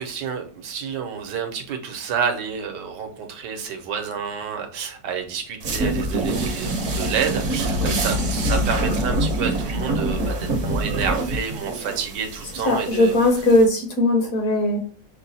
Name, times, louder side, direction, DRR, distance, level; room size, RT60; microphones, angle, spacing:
voice 1, 0.0-13.2, right 7 dB, 70° right, 4 dB, 1.4 m, -29 dB
sound 1, 5.6-13.6, right 1 dB, 50° right, 1.1 m, -25 dB
voice 2, 12.7-14.8, left 1 dB, 55° left, 3 dB, 1.2 m, -18 dB
5.7 x 2.3 x 4.0 m, 0.41 s
omnidirectional pair, 1.9 m